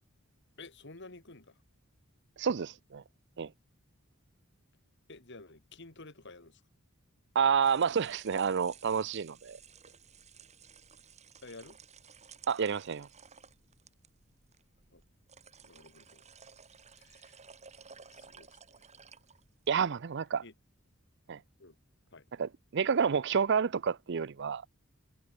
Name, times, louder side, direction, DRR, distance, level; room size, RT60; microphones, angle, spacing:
voice 1, 0.6-1.6 5.1-6.6 11.4-11.8 14.9-15.0 15.6-16.3 16.9-17.4 18.1-18.9 20.4-20.5 21.6-21.8 22.1-22.3, left 3 dB, 55° left, 2.7 m, -51 dB
voice 2, 2.4-3.0 3.4-3.5 7.3-9.6 12.5-13.1 19.7-20.4 21.3-21.4 22.4-24.6, right 6 dB, 55° right, 0.5 m, -29 dB
sound 1, 7.5-19.8, right 6 dB, 30° right, 2.5 m, -56 dB
head